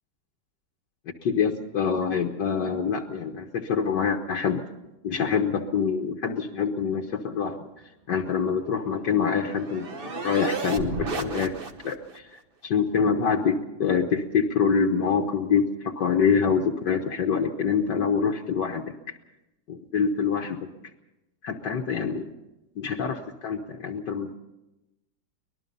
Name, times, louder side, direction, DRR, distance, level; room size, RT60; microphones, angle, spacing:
voice 1, 1.2-4.6 5.0-7.7 8.1-11.5 11.8-19.1 19.7-20.6 21.4-22.3 22.8-24.3, left 6 dB, 70° left, 1 dB, 1.7 m, -25 dB
sound 1, 8.5-12.2, right 4 dB, 35° right, 1.1 m, -34 dB
24.0 x 19.5 x 5.5 m, 0.98 s
omnidirectional pair, 2.0 m